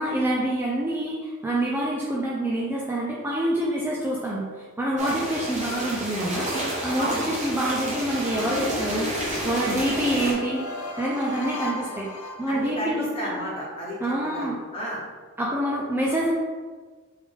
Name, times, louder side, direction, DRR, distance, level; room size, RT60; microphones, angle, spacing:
voice 1, 0.0-4.5 4.8-6.5 6.8-10.6 11.0-12.1 12.4-13.4 14.0-14.6 15.4-16.3, right 1 dB, 10° right, -5 dB, 0.4 m, -26 dB
sound 1, 5.0-10.3, right 1 dB, 35° right, 1.0 m, -30 dB
voice 2, 7.0-7.4 12.5-15.0, right 1 dB, 25° left, -5 dB, 1.0 m, -32 dB
sound 2, 8.3-13.0, left 2 dB, 65° left, 0.5 m, -35 dB
3.7 x 3.2 x 3.5 m, 1.4 s
head